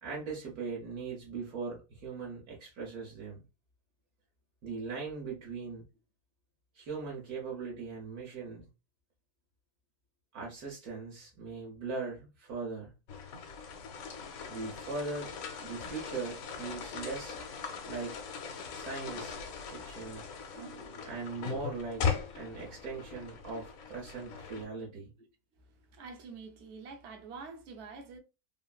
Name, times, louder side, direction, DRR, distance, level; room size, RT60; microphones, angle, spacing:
voice 1, 0.0-3.4 4.6-5.8 6.7-8.7 10.3-12.9 14.5-15.3 15.6-17.4 17.9-18.2 18.7-19.4 19.7-20.3 20.5-25.1, right 4 dB, 75° right, 1.3 m, -40 dB
sound 1, 13.1-24.7, left 6 dB, 75° left, 1.0 m, -39 dB
voice 2, 25.9-28.2, right 4 dB, 60° right, 0.8 m, -46 dB
3.1 x 2.4 x 2.2 m
omnidirectional pair, 1.6 m